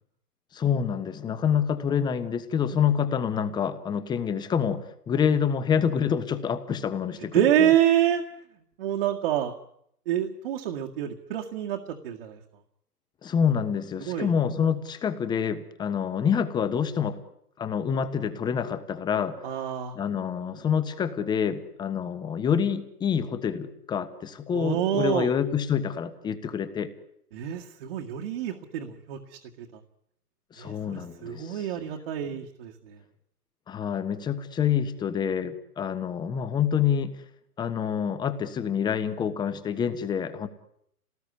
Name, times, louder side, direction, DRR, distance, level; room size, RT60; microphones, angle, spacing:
voice 1, 0.5-7.7 13.2-17.2 17.6-19.4 19.9-26.9 30.5-31.9 33.7-37.1 37.6-40.5, left 7 dB, 10° left, 12 dB, 1.3 m, -27 dB
voice 2, 7.3-8.2 8.8-9.5 10.1-12.4 14.0-14.3 19.4-19.9 24.5-25.3 27.3-29.8 30.6-33.0, right 11 dB, 40° right, 2 dB, 2.1 m, -27 dB
29.0 x 19.0 x 9.9 m, 0.74 s
figure-of-eight pair, 130°, 46 cm